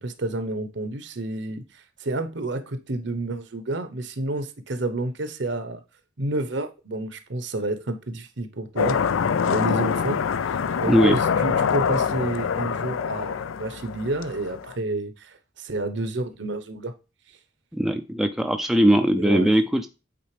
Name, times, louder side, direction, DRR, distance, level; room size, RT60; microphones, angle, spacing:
voice 1, 0.0-5.8 6.2-9.0 9.4-10.2 10.8-16.9 19.2-19.5, right 2 dB, 60° right, 0.8 m, -29 dB
sound 1, 8.8-14.7, left 6 dB, 80° left, 0.4 m, -25 dB
voice 2, 17.7-19.9, equal, ahead, 0.4 m, -20 dB
8.6 x 3.9 x 3.2 m
head